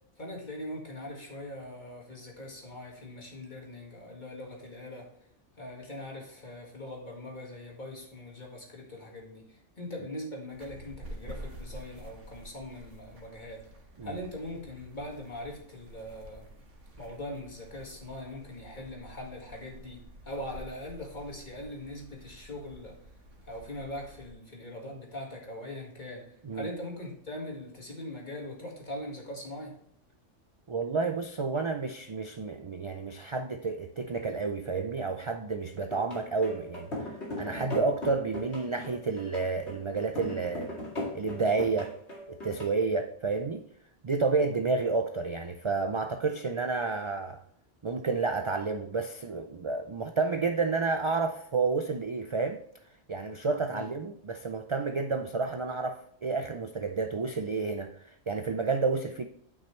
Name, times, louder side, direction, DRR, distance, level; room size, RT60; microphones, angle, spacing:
voice 1, 0.2-5.1 5.6-13.6 14.0-16.5 17.0-23.0 23.4-29.8 53.7-53.9, left 1 dB, 40° left, -1 dB, 2.1 m, -41 dB
sound 1, 10.5-24.3, right 1 dB, 80° right, 1.7 m, -49 dB
voice 2, 30.7-36.9 37.4-40.7 41.1-41.9 42.3-43.6 44.0-47.4 47.8-52.6 53.1-59.3, right 4 dB, 50° right, 6 dB, 0.3 m, -30 dB
sound 2, 35.9-42.7, left 1 dB, 60° left, 2.6 m, -38 dB
9.4 x 5.9 x 3.2 m, 0.69 s
omnidirectional pair, 1.3 m